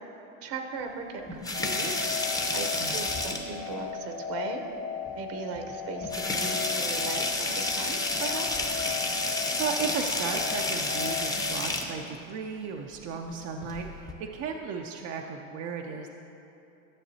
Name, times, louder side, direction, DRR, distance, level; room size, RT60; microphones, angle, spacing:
voice 1, 0.4-4.6 5.1-8.7, right 4 dB, 55° right, 4 dB, 0.9 m, -38 dB
sound 1, 1.3-3.7 5.1-5.2 5.6-5.7 6.0-11.9 13.6-14.1, left 2 dB, 10° left, 0.7 m, -30 dB
sound 2, 1.5-11.5, left 6 dB, 45° left, 0.7 m, -37 dB
voice 2, 8.9-16.1, right 5 dB, 40° right, 2 dB, 0.5 m, -35 dB
12.0 x 6.5 x 2.7 m, 2.9 s
hypercardioid pair, 95°, 40 cm